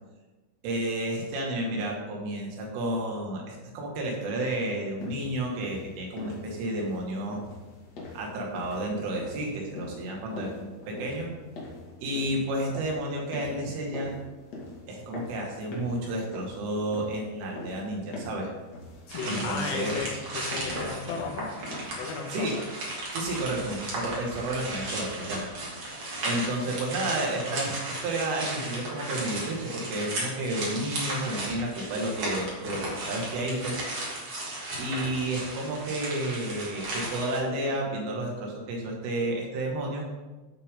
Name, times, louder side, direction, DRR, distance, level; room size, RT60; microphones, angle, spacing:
voice 1, 0.6-7.4 8.1-11.3 12.0-14.2 14.9-18.5 19.2-19.9 22.3-22.5 23.1-25.5 26.2-32.8 33.1-33.8 34.8-40.1, right 1 dB, 75° right, -1 dB, 4.6 m, -31 dB
sound 1, 5.0-22.3, left 2 dB, 45° left, 2.5 m, -44 dB
voice 2, 19.1-21.5 21.9-22.5, left 4 dB, 80° left, 1 dB, 4.3 m, -34 dB
sound 2, 19.1-37.4, right 1 dB, 40° right, 3.2 m, -35 dB
15.0 x 8.3 x 3.8 m, 1.2 s
omnidirectional pair, 5.7 m